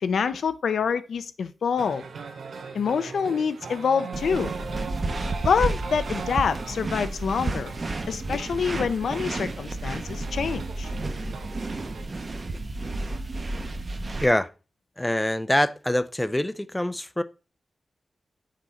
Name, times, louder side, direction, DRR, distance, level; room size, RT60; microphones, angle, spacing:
voice 1, 0.0-2.0 2.7-4.5 5.4-7.7 8.1-10.9, left 6 dB, 90° left, 0.5 m, -26 dB
sound 1, 1.8-12.0, right 5 dB, 85° right, 0.7 m, -40 dB
sound 2, 4.1-14.3, right 2 dB, 45° right, 0.8 m, -31 dB
voice 2, 15.0-17.2, left 1 dB, 10° left, 0.4 m, -24 dB
6.5 x 3.8 x 4.2 m
wide cardioid pair, 90°, 0 cm